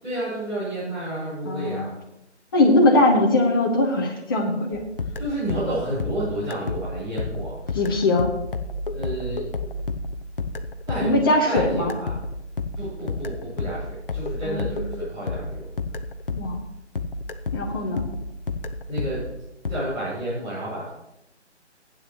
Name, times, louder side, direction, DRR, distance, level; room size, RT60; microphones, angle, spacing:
voice 1, 0.0-2.0 5.2-7.6 8.9-9.5 10.9-12.2 12.7-15.7 18.9-19.4 19.7-20.9, right 1 dB, 10° right, -16 dB, 4.8 m, -30 dB
voice 2, 1.4-1.9 2.5-4.9 7.7-8.3 11.0-11.9 14.4-14.7 16.3-16.6 17.5-18.0, left 2 dB, 20° left, 0 dB, 1.4 m, -21 dB
sound 1, 4.7-16.7 17.0-19.8, left 3 dB, 50° left, 0.9 m, -31 dB
19.5 x 8.6 x 3.1 m, 0.89 s
figure-of-eight pair, 160°, 35 cm